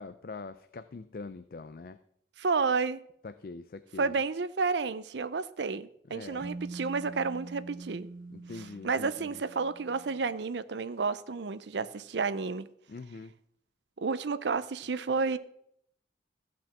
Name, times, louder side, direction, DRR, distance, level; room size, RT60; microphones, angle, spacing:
voice 1, 0.0-2.0 3.2-4.2 6.1-6.5 8.3-9.4 12.9-13.3, left 3 dB, 50° left, 0.4 m, -43 dB
voice 2, 2.4-3.0 4.0-8.1 8.6-12.7 14.0-15.4, right 4 dB, 75° right, 0.6 m, -31 dB
sound 1, 6.4-10.2, right 2 dB, 45° right, 0.8 m, -44 dB
14.5 x 6.0 x 5.9 m
head